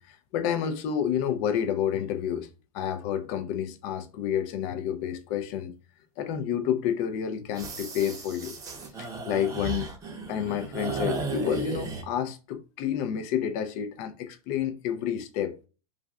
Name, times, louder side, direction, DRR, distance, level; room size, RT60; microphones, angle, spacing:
voice 1, 0.0-2.5 2.7-5.7 6.2-8.6 9.0-9.9 10.3-15.5, left 9 dB, 45° left, 0.5 m, -29 dB
sound 1, 7.5-12.0, right 4 dB, 20° right, 0.7 m, -35 dB
2.4 x 2.2 x 3.4 m
hypercardioid pair, 125°, 19 cm